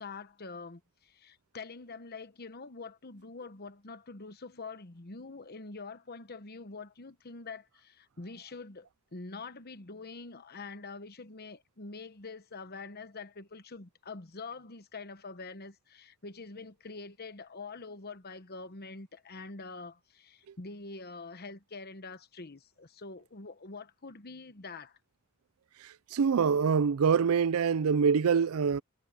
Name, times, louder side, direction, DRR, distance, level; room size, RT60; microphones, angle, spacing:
voice 1, 0.0-25.0, left 3 dB, 45° left, 1.1 m, -45 dB
voice 2, 26.1-28.8, right 6 dB, 75° right, 0.4 m, -25 dB
head